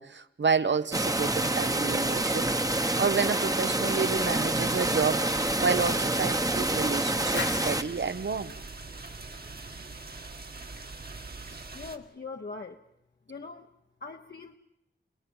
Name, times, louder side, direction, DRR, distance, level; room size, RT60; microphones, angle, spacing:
voice 1, 0.0-2.5 3.0-5.3 5.6-8.5 11.5-11.6, right 5 dB, 75° right, 1.0 m, -29 dB
sound 1, 0.9-7.8, right 1 dB, 20° right, 1.0 m, -27 dB
sound 2, 4.0-12.0, right 3 dB, 55° right, 1.7 m, -43 dB
sound 3, 7.3-10.0, left 4 dB, 85° left, 1.9 m, -41 dB
voice 2, 11.7-12.8 13.3-13.7 14.0-14.6, left 4 dB, 60° left, 1.0 m, -41 dB
29.5 x 18.5 x 7.2 m
wide cardioid pair, 65°, 19 cm